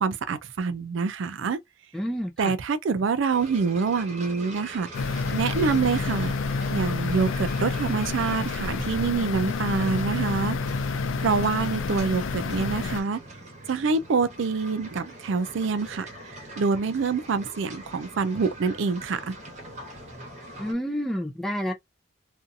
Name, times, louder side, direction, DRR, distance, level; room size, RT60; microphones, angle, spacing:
voice 1, 0.0-1.6 2.4-4.9 5.3-6.3 6.7-10.6 11.2-13.2 13.7-16.1 16.6-19.3, right 5 dB, 75° right, 0.4 m, -26 dB
voice 2, 1.9-2.5 20.6-21.7, equal, ahead, 0.5 m, -29 dB
sound 1, 3.3-20.7, right 1 dB, 35° right, 1.1 m, -43 dB
sound 2, 4.9-13.0, left 4 dB, 85° left, 0.4 m, -29 dB
2.6 x 2.4 x 2.6 m
head